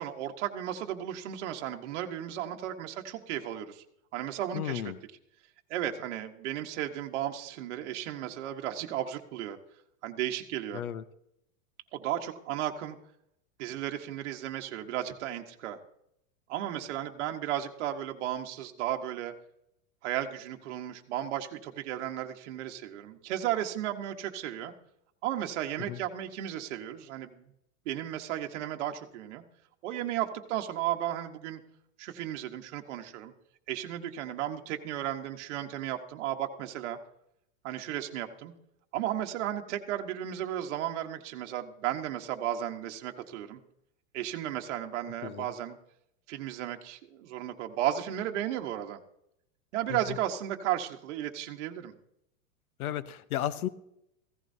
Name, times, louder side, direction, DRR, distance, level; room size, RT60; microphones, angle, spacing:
voice 1, 0.0-3.8 4.1-4.9 5.7-9.6 10.0-10.8 11.9-13.0 13.6-15.8 16.5-19.3 20.0-24.7 25.2-27.4 27.8-29.4 29.8-31.6 32.0-33.3 33.7-37.0 37.6-38.5 38.9-43.6 44.1-45.8 46.3-49.0 49.7-51.9, right 11 dB, 55° right, 4 dB, 1.2 m, -34 dB
voice 2, 4.5-5.0 10.7-11.0 25.9-26.0 45.2-45.5 52.8-53.7, left 11 dB, 90° left, 16 dB, 0.9 m, -33 dB
15.5 x 15.0 x 2.7 m, 0.78 s
supercardioid pair, 170°, 42 cm